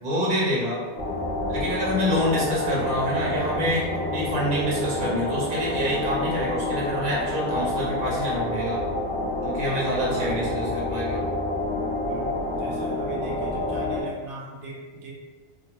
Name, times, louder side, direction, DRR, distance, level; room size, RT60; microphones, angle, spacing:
voice 1, 0.0-0.8 1.5-8.8 9.4-11.2, equal, 45° right, -6 dB, 1.0 m, -26 dB
sound 1, 1.0-14.0, left 1 dB, 85° left, 0.9 m, -28 dB
voice 2, 10.0-10.8 12.0-15.1, right 2 dB, 85° right, -3 dB, 0.9 m, -40 dB
2.9 x 2.2 x 2.8 m, 1.4 s
omnidirectional pair, 1.2 m